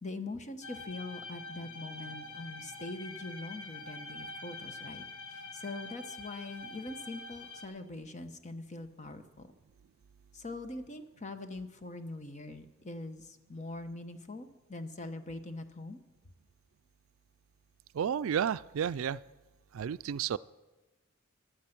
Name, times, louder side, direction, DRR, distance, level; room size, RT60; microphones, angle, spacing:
voice 1, 0.0-9.5 10.3-16.0, left 2 dB, 35° left, 8 dB, 1.0 m, -43 dB
sound 1, 0.6-7.7, left 3 dB, 80° left, 1.4 m, -45 dB
voice 2, 17.9-19.2 19.7-20.4, right 8 dB, 75° right, 16 dB, 0.4 m, -31 dB
15.5 x 11.5 x 5.9 m, 1.1 s
head